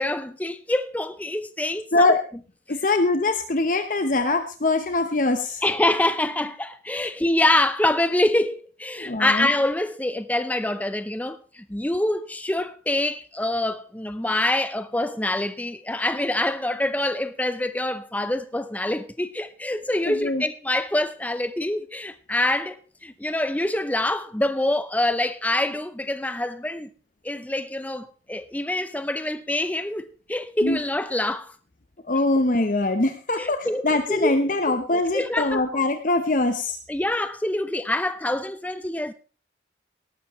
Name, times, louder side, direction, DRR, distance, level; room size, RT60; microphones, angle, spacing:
voice 1, 0.0-2.1 5.6-22.8 23.0-26.9 27.2-31.5 33.4-34.3 34.7-34.8 35.1-35.6 36.9-39.1, left 1 dB, 10° left, 0.5 m, -25 dB
voice 2, 2.7-5.6 7.0-7.1 9.0-9.5 20.0-20.4 30.6-30.8 32.1-36.8, left 2 dB, 45° left, 0.9 m, -23 dB
18.0 x 12.5 x 3.1 m
head